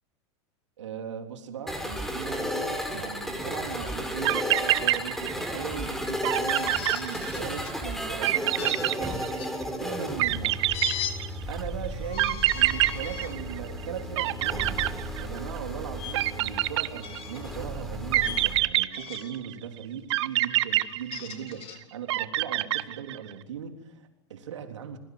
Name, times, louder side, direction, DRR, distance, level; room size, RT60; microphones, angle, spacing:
voice 1, 0.8-9.3 9.8-10.6 10.9-11.0 11.5-14.9 15.2-25.0, right 8 dB, 85° right, 5 dB, 3.6 m, -39 dB
sound 1, 1.7-18.6, equal, ahead, 4.9 m, -34 dB
sound 2, 4.0-4.1 4.3-5.6 5.9-6.0 6.2-7.7 8.2-9.6 10.2-11.5 12.2-13.9 14.2-15.6 16.1-17.4 18.1-19.5 20.1-21.6 22.1-23.3, right 16 dB, 70° right, 1.1 m, -26 dB
sound 3, 6.5-7.8 8.6-9.5 10.7-11.2 12.0-13.4 14.0-14.2 16.0-16.1 17.0-17.6 18.2-18.5 18.9-19.4 20.8-21.8, left 9 dB, 40° left, 3.8 m, -38 dB
28.5 x 19.0 x 7.9 m, 0.90 s
hypercardioid pair, 110°, 15 cm